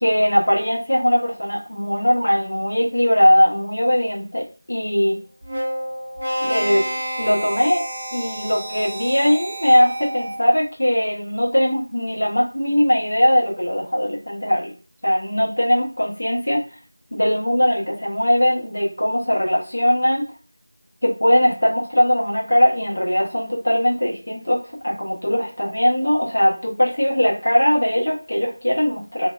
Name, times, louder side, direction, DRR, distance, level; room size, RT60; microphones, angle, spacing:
voice 1, 0.0-5.2 6.4-6.9 7.2-7.8 8.1-14.7 15.0-16.6 17.1-20.2 21.0-29.3, equal, 85° left, -3 dB, 1.1 m, -20 dB
sound 1, 5.4-10.6, right 1 dB, 20° right, 0.5 m, -29 dB
2.6 x 2.2 x 2.3 m, 0.35 s
figure-of-eight pair, 180°, 0 cm